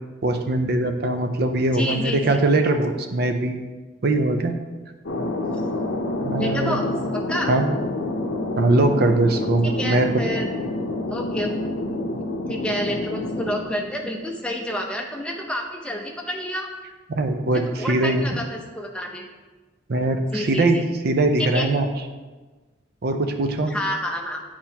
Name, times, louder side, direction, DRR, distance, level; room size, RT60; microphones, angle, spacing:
voice 1, 0.2-3.7 4.0-4.5 6.2-6.9 7.5-7.7 8.6-10.2 17.1-18.2 19.9-21.9 23.0-23.7, right 2 dB, 50° right, 6 dB, 0.5 m, -21 dB
voice 2, 1.7-2.4 6.4-6.9 7.1-7.5 9.6-10.5 11.1-11.8 12.5-16.7 17.5-19.3 20.3-20.8 21.4-21.7 23.7-24.4, left 1 dB, 5° left, 1 dB, 0.6 m, -29 dB
Thunder, 5.0-14.4, left 1 dB, 65° left, 0.7 m, -28 dB
8.8 x 4.4 x 2.8 m, 1.3 s
head